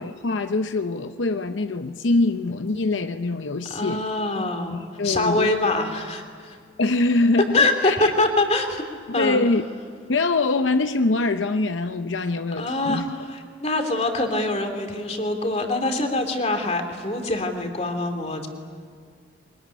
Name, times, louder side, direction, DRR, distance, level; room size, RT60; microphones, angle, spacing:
voice 1, 0.0-4.0 4.7-5.5 6.8-8.1 9.1-9.6 10.1-13.1, left 2 dB, 85° left, 9 dB, 0.8 m, -24 dB
voice 2, 3.7-4.8 5.0-6.6 7.5-8.8 9.1-9.4 12.6-18.5, left 2 dB, 35° left, 4 dB, 2.9 m, -24 dB
24.0 x 21.5 x 10.0 m, 2.1 s
head